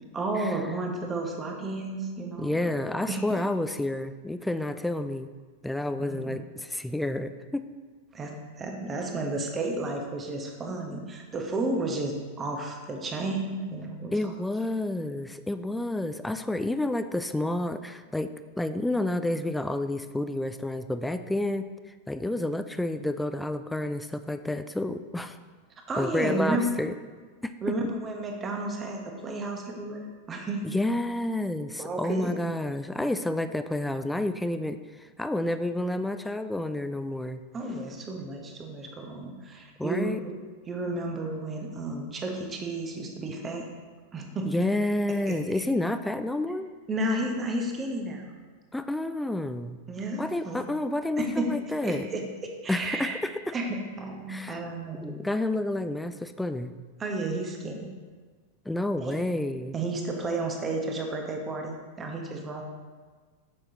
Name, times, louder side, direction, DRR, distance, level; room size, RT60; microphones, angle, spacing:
voice 1, 0.0-2.8 3.1-3.2 6.0-6.3 8.1-14.3 14.7-14.8 25.9-26.7 27.6-30.6 31.8-32.3 37.5-40.3 40.7-43.7 44.1-44.5 45.3-45.4 46.9-48.2 49.9-50.6 51.2-51.5 51.8-53.2 53.5-55.3 57.0-57.9 59.0-59.2 59.7-62.6, right 2 dB, 20° right, 2 dB, 1.0 m, -32 dB
voice 2, 2.4-5.3 5.6-7.7 14.1-21.7 22.1-25.4 26.0-26.9 27.4-27.5 30.6-37.4 39.8-40.2 44.4-46.7 48.7-49.8 50.2-52.1 52.7-53.5 54.3-54.6 55.0-56.7 58.7-59.7, left 1 dB, 5° left, 10 dB, 0.3 m, -30 dB
8.5 x 6.3 x 2.9 m, 1.5 s
figure-of-eight pair, 90°, 0 cm